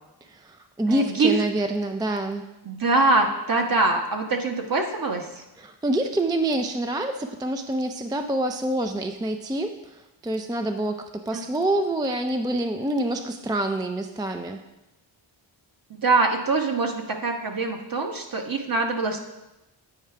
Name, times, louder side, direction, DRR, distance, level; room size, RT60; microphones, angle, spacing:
voice 1, 0.3-2.5 5.6-14.6, right 1 dB, 10° right, 6 dB, 0.3 m, -27 dB
voice 2, 0.9-1.3 2.6-5.4 11.3-11.4 15.9-19.2, right 3 dB, 45° right, 3 dB, 1.1 m, -24 dB
8.6 x 4.6 x 3.4 m, 0.98 s
cardioid pair, 60°, 49 cm